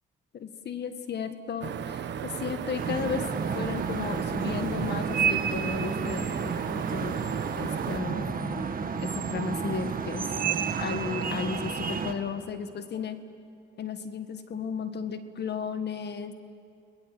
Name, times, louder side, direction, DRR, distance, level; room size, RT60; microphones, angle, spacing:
voice 1, 0.3-3.3 3.5-7.2 7.6-8.7 9.0-10.6 10.8-13.2 13.8-16.3, left 6 dB, 60° left, 9 dB, 1.7 m, -34 dB
sound 1, 1.6-8.0, right 8 dB, 65° right, 1.3 m, -35 dB
sound 2, 2.7-12.1, right 6 dB, 45° right, 1.9 m, -31 dB
30.0 x 21.0 x 7.8 m, 2.5 s
cardioid pair, 90°, 20 cm